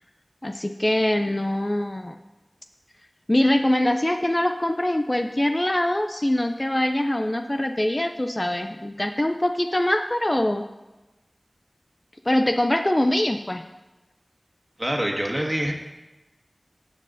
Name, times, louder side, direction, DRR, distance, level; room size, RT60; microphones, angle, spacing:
voice 1, 0.4-2.2 3.3-10.6 12.3-13.6, left 1 dB, 30° left, 6 dB, 0.4 m, -23 dB
voice 2, 14.8-15.7, equal, 15° right, 0 dB, 1.7 m, -25 dB
15.5 x 7.6 x 2.7 m, 1.1 s
wide cardioid pair, 40°, 0 cm